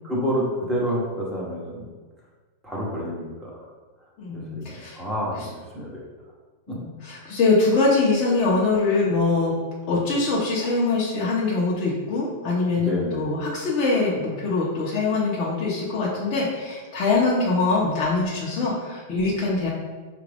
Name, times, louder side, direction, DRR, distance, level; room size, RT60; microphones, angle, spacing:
voice 1, 0.0-1.8 2.6-3.6 4.3-6.0 6.7-6.8 12.8-13.2, equal, 5° right, -6 dB, 1.1 m, -28 dB
voice 2, 4.2-5.0 6.7-9.5 9.9-19.7, left 3 dB, 35° left, -7 dB, 0.9 m, -23 dB
5.6 x 2.5 x 3.4 m, 1.3 s
supercardioid pair, 155°, 0 cm